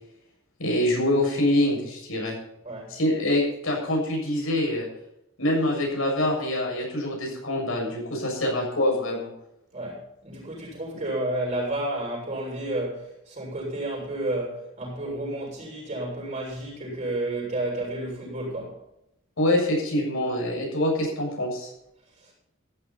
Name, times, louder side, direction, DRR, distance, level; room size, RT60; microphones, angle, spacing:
voice 1, 0.6-2.3 2.9-4.9 5.4-9.3 19.4-21.7, left 1 dB, 75° left, 7.1 m, -25 dB
voice 2, 2.6-3.0 9.7-18.8 22.2-22.3, right 1 dB, 35° right, 6.9 m, -31 dB
15.0 x 12.5 x 4.3 m
head